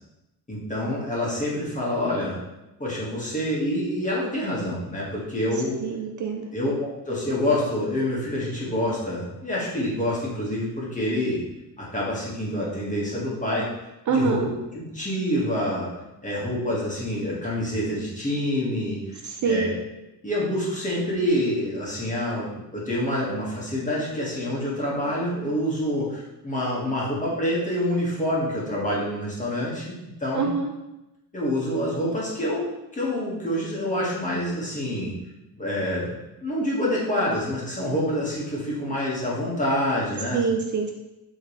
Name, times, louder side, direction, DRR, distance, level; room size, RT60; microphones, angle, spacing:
voice 1, 0.5-2.4 2.8-5.8 6.5-11.4 11.8-13.7 14.1-14.4 14.7-15.9 16.2-19.2 19.4-19.7 20.2-30.5 31.3-35.1 35.5-40.4, left 1 dB, 20° left, -6 dB, 1.8 m, -27 dB
voice 2, 5.8-6.5 14.1-14.5 19.2-19.8 30.3-30.7 40.3-40.9, right 4 dB, 50° right, 3 dB, 0.5 m, -25 dB
8.4 x 3.6 x 3.2 m, 0.97 s
wide cardioid pair, 155°, 39 cm